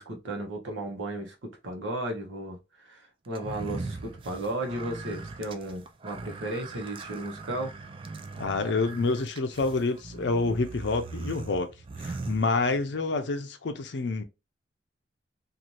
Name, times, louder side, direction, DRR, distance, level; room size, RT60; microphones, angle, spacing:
voice 1, 0.0-2.6 2.8-7.7, right 1 dB, 80° right, 0.9 m, -34 dB
sound 1, 3.3-13.0, right 3 dB, 30° right, 0.3 m, -40 dB
voice 2, 8.4-11.7 12.0-14.2, left 3 dB, 65° left, 0.5 m, -28 dB
2.7 x 2.5 x 3.1 m
head